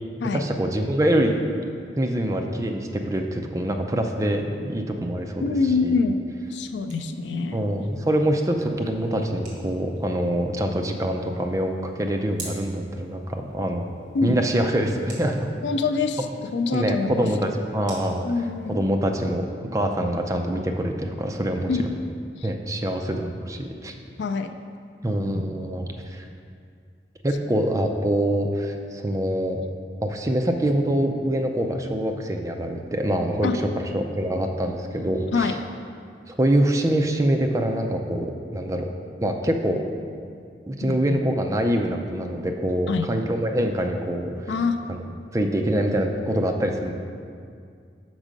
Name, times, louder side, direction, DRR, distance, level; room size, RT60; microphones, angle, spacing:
voice 1, 0.3-1.3 2.0-5.6 5.8-5.9 7.5-13.8 14.2-15.5 16.7-18.3 18.7-19.5 19.7-21.7 22.4-23.9 25.0-26.3 27.2-29.6 30.0-35.5 36.3-38.9 39.2-39.8 40.7-44.6 44.9-45.0 45.3-46.9, right 1 dB, 20° right, 3 dB, 0.4 m, -25 dB
voice 2, 5.4-6.2 6.5-7.6 14.1-14.4 15.6-17.3 18.2-18.8 21.7-21.9 22.4-22.5 24.2-24.5 25.2-25.7 33.4-33.6 35.3-35.6 40.8-41.2 42.9-43.1 44.5-44.8 45.0-45.2, left 4 dB, 85° left, 8 dB, 0.4 m, -25 dB
sound 1, 6.4-18.8, right 2 dB, 45° right, 1.9 m, -48 dB
6.1 x 5.4 x 5.1 m, 2.3 s
head